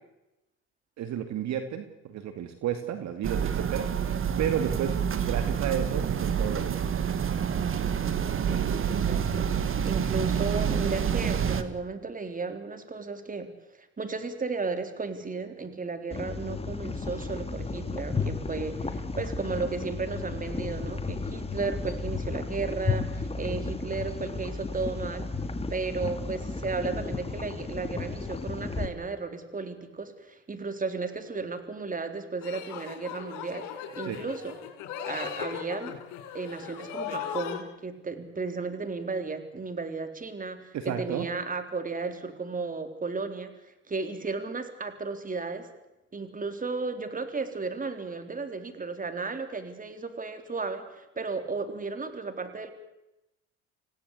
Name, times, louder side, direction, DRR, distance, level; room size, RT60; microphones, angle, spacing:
voice 1, 1.0-3.9 4.4-7.0 34.0-34.2 40.7-41.3, right 9 dB, 60° right, 8 dB, 2.4 m, -32 dB
sound 1, 3.2-11.6, right 8 dB, 40° right, 2.1 m, -28 dB
voice 2, 8.5-13.5 14.0-25.3 25.7-33.7 33.9-34.6 35.1-36.0 36.3-45.7 46.1-52.7, right 4 dB, 25° right, 8 dB, 3.9 m, -34 dB
sound 2, 16.1-28.9, left 3 dB, 20° left, 2.5 m, -33 dB
sound 3, 32.4-37.6, left 8 dB, 70° left, 4.5 m, -37 dB
26.5 x 17.0 x 8.4 m, 0.94 s
supercardioid pair, 70°, 31 cm